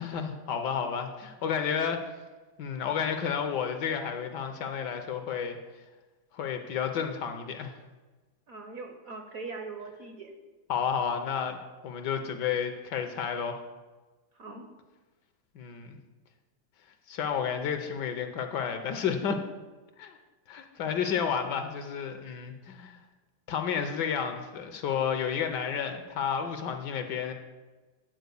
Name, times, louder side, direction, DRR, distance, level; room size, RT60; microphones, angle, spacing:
voice 1, 0.0-2.0 2.6-5.6 6.3-7.8 10.7-11.6 11.8-13.6 15.5-16.0 17.1-19.4 20.0-20.2 20.5-23.0 23.5-27.3, left 7 dB, 70° left, 7 dB, 1.2 m, -31 dB
voice 2, 8.5-10.3 14.4-14.7, right 3 dB, 60° right, 4 dB, 1.0 m, -41 dB
9.3 x 4.2 x 6.8 m, 1.2 s
omnidirectional pair, 2.1 m